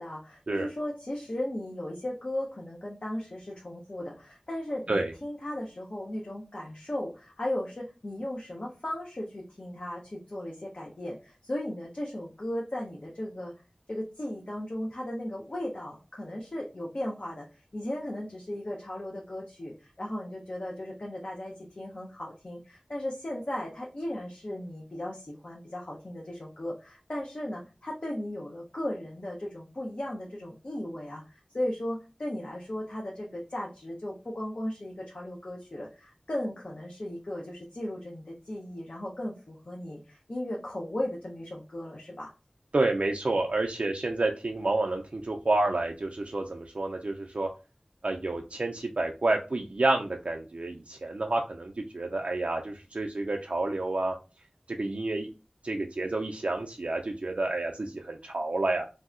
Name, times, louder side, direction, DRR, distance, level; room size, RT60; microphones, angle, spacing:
voice 1, 0.0-13.5 13.9-17.4 17.7-42.3, left 1 dB, 60° left, -3 dB, 0.7 m, -36 dB
voice 2, 42.7-47.5 48.0-54.2 54.7-55.3 55.6-58.9, right 2 dB, 65° right, 2 dB, 0.3 m, -29 dB
3.2 x 2.7 x 2.4 m, 0.31 s
wide cardioid pair, 45°, 2 cm